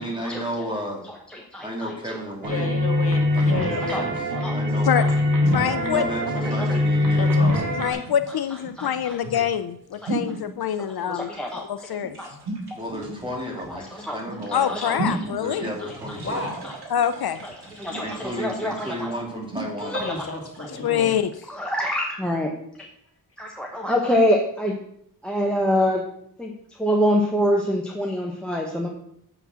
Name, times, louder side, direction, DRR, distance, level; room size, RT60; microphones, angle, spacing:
voice 1, 0.0-1.0 1.6-2.7 3.3-4.1 4.5-4.9 5.7-7.3 12.7-16.4 18.0-20.0, equal, 15° right, -1 dB, 2.8 m, -33 dB
voice 2, 1.1-2.2 3.8-4.0 4.3-4.6 5.0-5.1 5.5-5.6 6.4-6.8 7.5-7.6 8.8-9.4 10.0-10.1 11.0-11.7 12.2-12.3 12.7-12.8 13.7-14.2 14.5-15.2 15.6-16.2 16.6-16.7 17.4-17.5 17.8-19.1 19.8-20.1 20.6-20.7 21.5-22.5 22.8-22.9 23.4-24.8 25.2-26.0 26.4-28.9, equal, ahead, 0 dB, 1.1 m, -26 dB
voice 3, 2.4-4.1 7.2-7.8 16.2-16.7 19.9-21.1, left 2 dB, 35° left, 1 dB, 2.2 m, -31 dB
sound 1, 2.4-7.9, left 1 dB, 55° right, 1.9 m, -22 dB
voice 4, 5.4-6.0 7.8-11.3 11.6-12.2 14.5-15.7 16.9-17.4 20.8-21.3, left 9 dB, 70° left, 11 dB, 0.5 m, -25 dB
sound 2, 6.5-21.3, right 2 dB, 85° right, 2.6 m, -36 dB
7.9 x 6.0 x 6.2 m, 0.71 s
wide cardioid pair, 95°, 38 cm